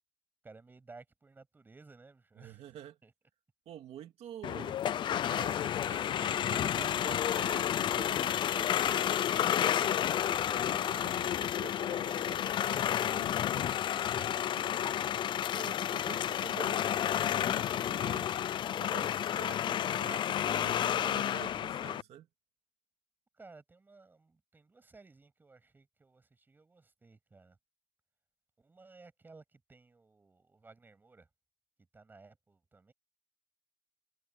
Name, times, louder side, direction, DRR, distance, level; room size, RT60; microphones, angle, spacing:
voice 1, 0.4-2.8 3.0-3.1 23.4-27.6 28.6-31.3 31.9-32.9, right 3 dB, 20° right, 7.2 m, -57 dB
voice 2, 2.4-3.0 3.7-4.8 5.0-15.0 15.5-18.5 18.8-22.3, right 11 dB, 80° right, 2.1 m, -49 dB
sound 1, 4.4-22.0, left 10 dB, 50° left, 0.4 m, -31 dB
cardioid pair, 165°, 10 cm